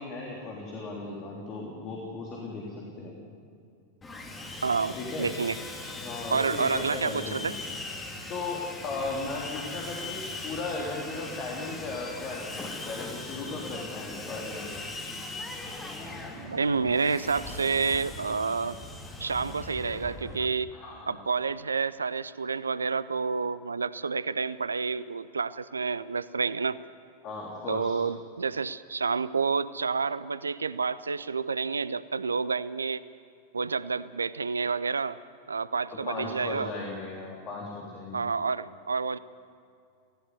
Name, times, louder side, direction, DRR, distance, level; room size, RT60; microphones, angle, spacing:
voice 1, 0.0-3.1 4.9-5.3 6.0-7.6 8.3-14.8 20.7-21.2 27.2-28.0 36.1-38.2, left 3 dB, 35° left, -2 dB, 3.4 m, -36 dB
Sawing, 4.0-20.5, left 2 dB, 15° left, 2.8 m, -40 dB
voice 2, 4.6-5.6 6.3-7.5 16.4-18.8 19.2-20.7 21.1-26.8 27.7-33.0 33.5-35.2 35.5-36.7 38.1-39.2, right 5 dB, 75° right, 18 dB, 0.5 m, -29 dB
17.5 x 16.5 x 9.5 m, 2.4 s
figure-of-eight pair, 90°, 0 cm